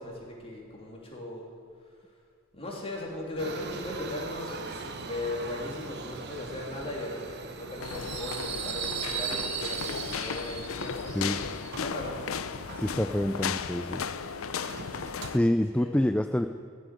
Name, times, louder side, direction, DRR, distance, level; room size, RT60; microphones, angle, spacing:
voice 1, 0.0-1.5 2.5-11.3 11.8-12.2 15.7-15.9, left 2 dB, 30° left, -2 dB, 3.2 m, -38 dB
Subway metro underground, 3.4-15.4, right 6 dB, 55° right, 1.0 m, -39 dB
sound 1, 7.8-15.4, left 6 dB, 75° left, 0.6 m, -35 dB
voice 2, 12.8-14.0 15.3-16.5, left 1 dB, 5° left, 8 dB, 0.3 m, -26 dB
16.0 x 7.6 x 9.9 m, 2.2 s
head